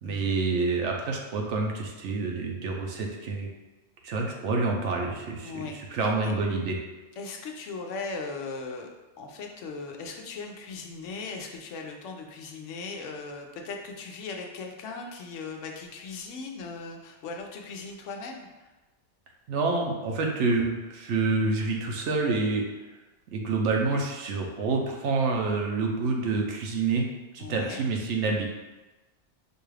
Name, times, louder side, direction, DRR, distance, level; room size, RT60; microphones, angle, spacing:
voice 1, 0.0-3.5 4.0-5.6 5.9-6.8 19.5-22.7 23.3-27.1 27.3-28.5, right 3 dB, 75° right, 1 dB, 0.9 m, -27 dB
voice 2, 5.4-6.3 7.2-8.9 9.2-18.7 27.4-27.8, left 4 dB, 85° left, 2 dB, 0.9 m, -38 dB
4.7 x 2.3 x 3.2 m, 1.1 s
omnidirectional pair, 1.2 m